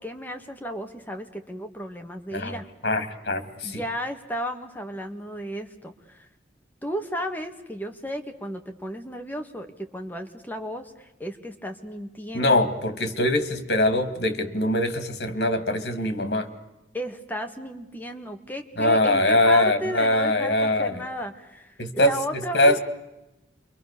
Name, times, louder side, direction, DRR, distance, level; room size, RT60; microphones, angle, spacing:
voice 1, 0.0-2.7 3.6-6.2 6.8-12.7 16.9-22.8, equal, 10° left, 5 dB, 1.9 m, -34 dB
voice 2, 2.8-3.8 12.3-16.5 18.8-21.0 21.8-22.8, left 1 dB, 70° left, 9 dB, 2.5 m, -23 dB
28.5 x 24.0 x 6.9 m, 0.93 s
head